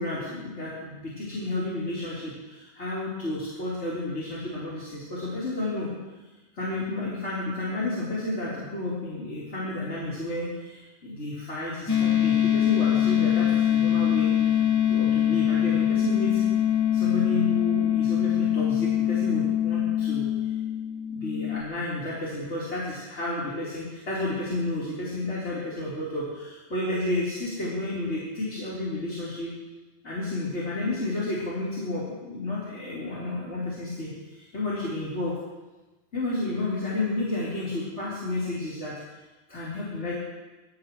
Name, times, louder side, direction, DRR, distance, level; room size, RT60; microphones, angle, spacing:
voice 1, 0.0-5.9 6.5-16.4 16.9-20.5 21.1-29.5 30.0-35.4 36.1-38.9 39.5-40.1, left 2 dB, 65° left, -9 dB, 4.3 m, -31 dB
sound 1, 11.9-21.6, left 10 dB, 20° left, 0.6 m, -23 dB
25.5 x 15.5 x 3.2 m, 1.1 s
omnidirectional pair, 1.3 m